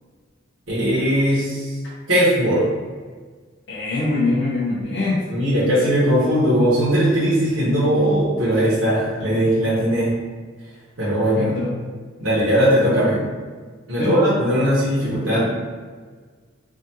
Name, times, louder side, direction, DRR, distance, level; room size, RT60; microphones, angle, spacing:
voice 1, 0.7-1.7 2.1-2.6 5.3-10.1 11.0-11.5 12.2-13.2 13.9-15.5, equal, 80° right, -9 dB, 1.4 m, -19 dB
voice 2, 3.7-5.2 11.3-11.8 14.0-14.2, left 2 dB, 65° left, -8 dB, 0.9 m, -23 dB
4.9 x 2.7 x 2.9 m, 1.5 s
head